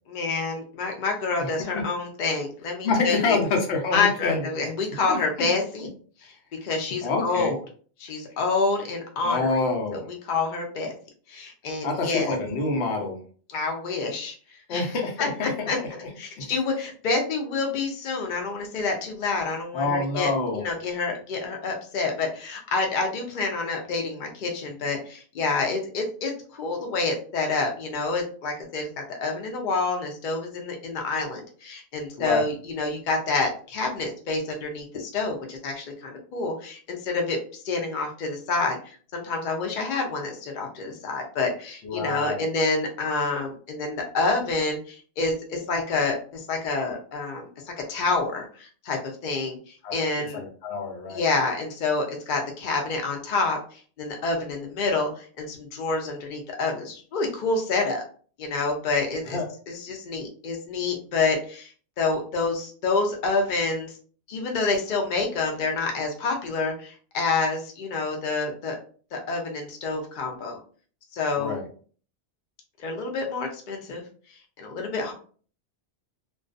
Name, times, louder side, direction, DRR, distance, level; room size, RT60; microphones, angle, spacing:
voice 1, 0.1-3.4 3.9-5.9 6.6-7.6 8.0-9.6 9.9-10.9 11.3-12.3 13.5-14.3 14.7-14.9 15.2-15.8 16.2-37.4 37.6-38.8 39.1-50.4 51.1-58.0 58.4-59.4 59.7-61.7 62.0-63.9 64.3-68.8 69.1-70.6 71.1-71.6 72.8-74.0 74.6-75.1, left 3 dB, 55° left, 2 dB, 0.6 m, -28 dB
voice 2, 1.4-1.8 2.8-4.5 5.1-5.5 7.0-7.6 9.2-10.1 11.8-13.2 14.7-16.1 16.4-16.5 19.7-20.6 32.2-32.5 41.8-42.5 49.8-51.3 59.3-59.5 71.4-71.6, left 3 dB, 85° left, 2 dB, 1.0 m, -27 dB
2.3 x 2.2 x 2.4 m, 0.43 s
omnidirectional pair, 1.1 m